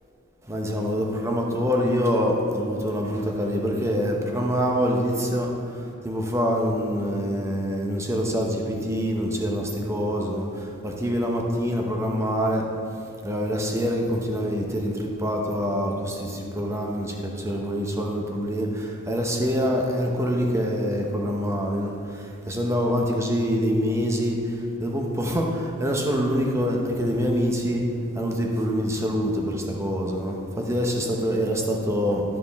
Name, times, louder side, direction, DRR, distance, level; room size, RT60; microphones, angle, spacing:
voice 1, 0.5-5.5 6.0-12.6 13.2-24.5 24.8-27.9 28.1-32.2, equal, 15° right, 0 dB, 0.8 m, -25 dB
12.5 x 4.6 x 3.5 m, 2.4 s
head